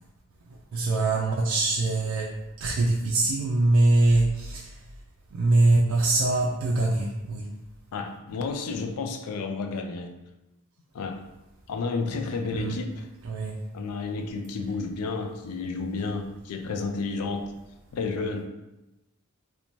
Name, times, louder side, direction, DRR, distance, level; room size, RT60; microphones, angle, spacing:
voice 1, 0.5-4.8 5.3-7.5 12.5-12.8 13.2-13.6, right 2 dB, 65° right, -2 dB, 0.3 m, -23 dB
voice 2, 7.9-10.2 10.9-11.2 11.7-13.0 13.7-17.5 17.9-18.4, left 4 dB, 85° left, 5 dB, 0.4 m, -31 dB
2.6 x 2.1 x 3.0 m, 0.98 s
head